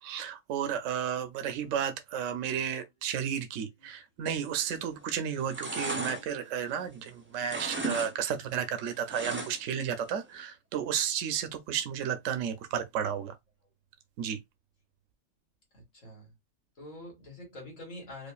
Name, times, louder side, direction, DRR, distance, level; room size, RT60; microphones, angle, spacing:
voice 1, 0.0-13.3 14.2-14.4, right 8 dB, 75° right, 0.9 m, -33 dB
voice 2, 2.7-3.2 3.8-3.9 12.9-13.0 13.6-13.7 15.7-16.3 16.8-18.3, left 1 dB, 75° left, 2.2 m, -48 dB
sound 1, 4.7-5.0 5.3-7.1 7.4-8.1 8.4-9.8 10.2-10.3, right 2 dB, 15° right, 0.4 m, -36 dB
4.9 x 2.4 x 2.3 m
omnidirectional pair, 1.4 m